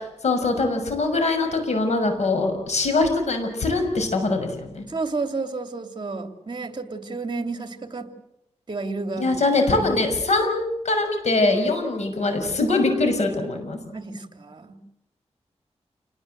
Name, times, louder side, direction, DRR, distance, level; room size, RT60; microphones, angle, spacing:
voice 1, 0.2-4.8 9.2-13.8, left 2 dB, 75° left, 6 dB, 6.2 m, -22 dB
voice 2, 4.9-8.1 8.7-9.3 9.7-9.8 13.9-14.8, right 3 dB, 40° right, 7 dB, 2.7 m, -31 dB
28.5 x 20.0 x 7.9 m, 0.87 s
wide cardioid pair, 90°, 12 cm